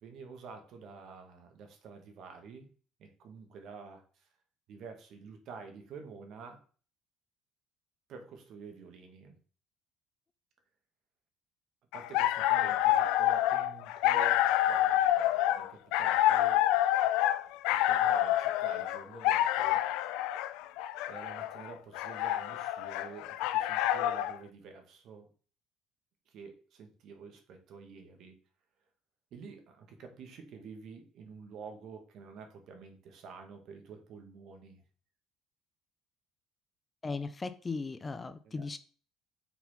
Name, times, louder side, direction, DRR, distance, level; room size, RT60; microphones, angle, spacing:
voice 1, 0.0-2.7 3.0-4.3 4.7-6.6 8.1-9.3 11.9-16.6 17.7-19.8 21.1-25.3 26.3-28.4 29.3-34.8 38.4-38.7, right 5 dB, 55° right, 5 dB, 1.7 m, -49 dB
sound 1, 11.9-24.4, left 13 dB, 90° left, 0.4 m, -28 dB
voice 2, 37.0-38.8, left 4 dB, 20° left, 11 dB, 0.4 m, -37 dB
6.0 x 4.3 x 5.6 m, 0.40 s
cardioid pair, 145°, 0 cm